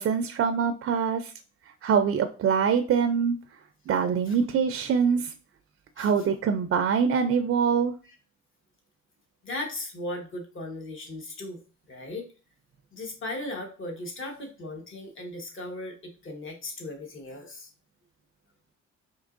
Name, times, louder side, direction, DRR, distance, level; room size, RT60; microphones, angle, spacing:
voice 1, 0.0-1.3 1.8-3.4 3.9-5.3 6.0-7.9, right 6 dB, 45° right, 7 dB, 0.4 m, -24 dB
voice 2, 9.4-11.6 11.9-12.3 12.9-17.7, left 1 dB, 40° left, 2 dB, 1.2 m, -37 dB
4.4 x 2.9 x 2.5 m, 0.35 s
cardioid pair, 90°, 30 cm